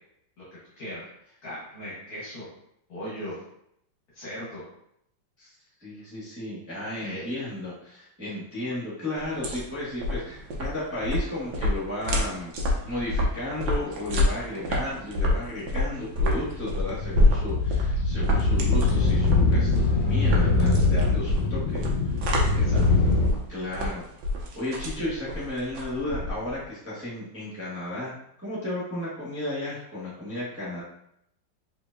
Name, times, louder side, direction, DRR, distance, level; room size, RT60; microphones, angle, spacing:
voice 1, 0.8-1.1 1.4-2.5 2.9-3.4 4.1-4.6 7.0-7.4 22.5-22.9, equal, 55° left, -8 dB, 1.7 m, -38 dB
voice 2, 5.8-12.5 12.8-21.8 23.5-24.0 24.5-28.1 28.4-30.8, left 1 dB, 10° right, -10 dB, 1.3 m, -33 dB
sound 1, 9.2-26.6, left 1 dB, 70° right, 1.5 m, -28 dB
sound 2, 16.4-23.2, left 3 dB, 75° left, 1.4 m, -23 dB
4.6 x 3.9 x 2.6 m, 0.75 s
omnidirectional pair, 2.1 m